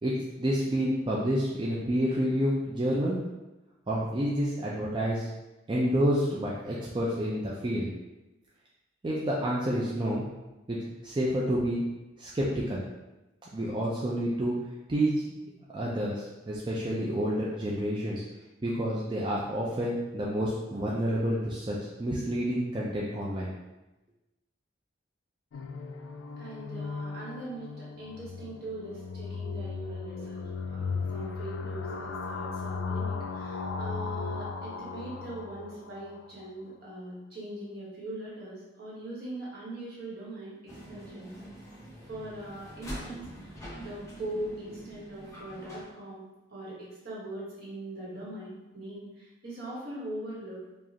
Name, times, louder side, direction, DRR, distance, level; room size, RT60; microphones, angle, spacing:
voice 1, 0.0-3.2 3.9-5.3 5.7-7.9 9.0-10.2 10.7-10.8 11.0-11.8 12.2-12.8 13.5-14.5 14.9-15.2 15.7-18.2 18.6-23.5, equal, 25° right, -5 dB, 0.4 m, -29 dB
sound 1, 25.5-36.3, left 4 dB, 90° left, 0.4 m, -36 dB
voice 2, 26.4-41.3 42.0-46.2 46.5-50.6, right 1 dB, 55° right, -6 dB, 1.4 m, -41 dB
sound 2, 40.7-45.8, equal, 15° left, 0.9 m, -44 dB
4.8 x 2.4 x 2.8 m, 1.0 s
head